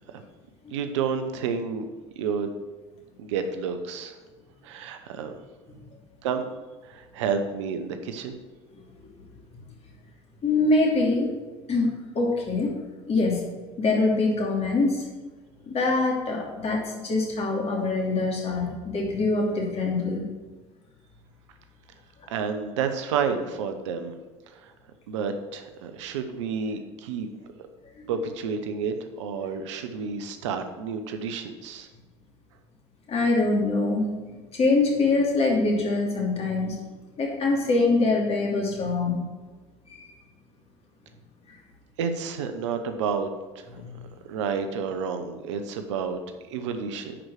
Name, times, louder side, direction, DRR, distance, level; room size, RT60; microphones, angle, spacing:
voice 1, 0.7-1.8 2.2-2.5 3.2-4.2 4.6-5.3 6.2-6.4 6.8-8.3 22.3-24.1 24.5-24.7 25.1-27.3 28.1-31.9 42.0-43.8 44.3-46.2 46.5-47.2, right 6 dB, 80° right, 7 dB, 0.9 m, -30 dB
voice 2, 10.4-11.3 11.7-12.7 13.1-13.5 13.8-15.1 15.7-20.3 28.0-28.1 33.1-34.1 34.5-36.8 37.2-39.2 39.9-40.1 43.8-44.0, left 3 dB, 40° left, 0 dB, 2.9 m, -24 dB
10.0 x 4.8 x 6.4 m, 1.3 s
hypercardioid pair, 70°, 15 cm